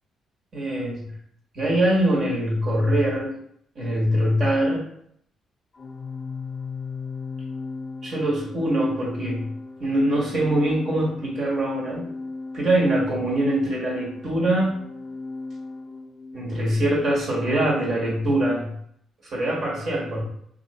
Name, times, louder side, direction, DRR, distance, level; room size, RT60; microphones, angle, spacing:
voice 1, 0.5-1.1 1.5-3.4 3.7-4.9 8.0-9.5 9.8-12.0 12.5-14.9 16.3-18.7 19.2-20.2, right 1 dB, 50° right, -3 dB, 1.5 m, -23 dB
Organ, 5.8-16.5, left 4 dB, 35° left, 0.4 m, -37 dB
2.8 x 2.6 x 4.2 m, 0.69 s
cardioid pair, 90°, 0 cm